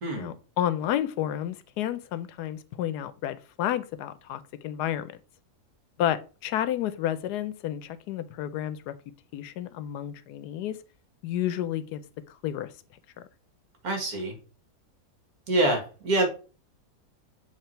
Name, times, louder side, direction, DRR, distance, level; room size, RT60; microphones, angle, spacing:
voice 1, 0.2-5.1 6.0-8.9 9.3-10.8 11.2-12.0 12.4-12.7, left 11 dB, 90° left, 1.2 m, -31 dB
voice 2, 13.8-14.4 15.5-16.3, right 1 dB, 65° right, 2.1 m, -25 dB
7.4 x 3.1 x 4.4 m
omnidirectional pair, 1.7 m